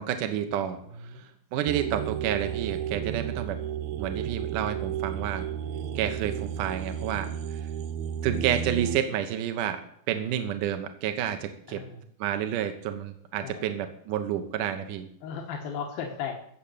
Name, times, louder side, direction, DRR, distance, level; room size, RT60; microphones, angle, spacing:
voice 1, 0.0-3.6 4.0-5.5 6.0-7.6 8.2-9.8 10.1-11.8 12.2-15.1, right 10 dB, 70° right, 7 dB, 2.4 m, -30 dB
sound 1, 1.7-9.0, right 9 dB, 90° right, 1.6 m, -33 dB
voice 2, 11.7-12.0 13.4-13.7 15.2-16.4, left 7 dB, 80° left, 1 dB, 3.2 m, -36 dB
14.5 x 7.5 x 8.4 m, 0.68 s
omnidirectional pair, 4.1 m